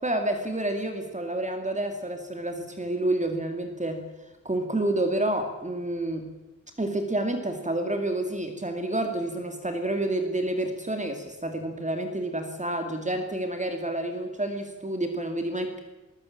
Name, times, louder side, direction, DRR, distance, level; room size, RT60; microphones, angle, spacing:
voice 1, 0.0-4.0 4.4-6.3 6.8-15.8, right 1 dB, 25° right, 5 dB, 2.5 m, -29 dB
20.5 x 20.0 x 8.8 m, 1.1 s
wide cardioid pair, 115°, 31 cm